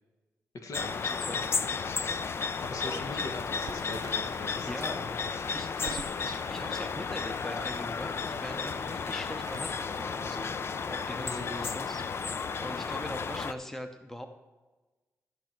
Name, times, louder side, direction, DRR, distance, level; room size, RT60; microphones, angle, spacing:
voice 1, 0.5-1.0 2.6-5.1 11.2-11.7, left 2 dB, 65° left, 5 dB, 1.3 m, -40 dB
sound 1, 0.7-13.5, left 5 dB, 45° left, 0.4 m, -33 dB
voice 2, 2.7-3.0 4.7-5.0 5.5-10.6 10.9-12.0 12.6-14.3, left 1 dB, 5° left, 6 dB, 0.7 m, -41 dB
Crackle, 3.7-10.5, right 8 dB, 80° right, 0.5 m, -51 dB
13.5 x 6.1 x 4.5 m, 1.2 s
wide cardioid pair, 115°, 6 cm